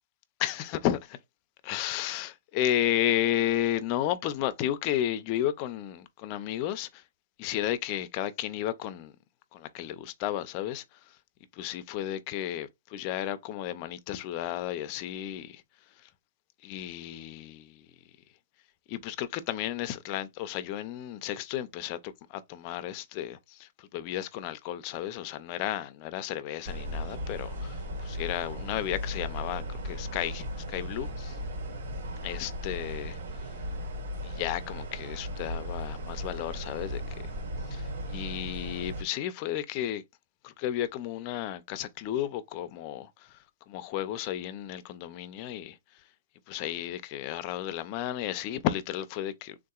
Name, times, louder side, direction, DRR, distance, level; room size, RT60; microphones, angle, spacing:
voice 1, 0.4-1.2 1.6-7.0 7.4-9.1 9.5-11.2 11.5-15.6 16.6-17.9 18.9-31.4 32.2-33.5 34.2-37.0 37.7-40.0 40.4-43.4 43.7-45.8 46.5-49.6, left 12 dB, 25° left, 0.3 m, -33 dB
sound 1, 26.6-39.0, equal, 60° right, 1.6 m, -36 dB
3.6 x 2.7 x 2.3 m
hypercardioid pair, 175°, 0 cm